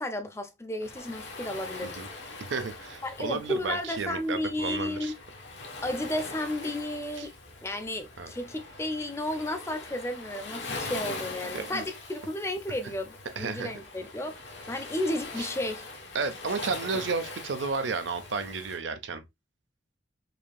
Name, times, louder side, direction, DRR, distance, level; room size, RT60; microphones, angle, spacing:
voice 1, 0.0-2.0 3.0-5.2 5.8-7.3 7.6-15.8, left 1 dB, 15° left, 0.4 m, -33 dB
Waves surf, 0.8-18.8, left 3 dB, 75° left, 1.2 m, -42 dB
voice 2, 2.5-5.1 7.2-7.3 8.2-8.3 11.5-11.8 13.4-13.7 16.1-19.2, right 4 dB, 80° right, 0.6 m, -32 dB
5.0 x 2.7 x 2.2 m
head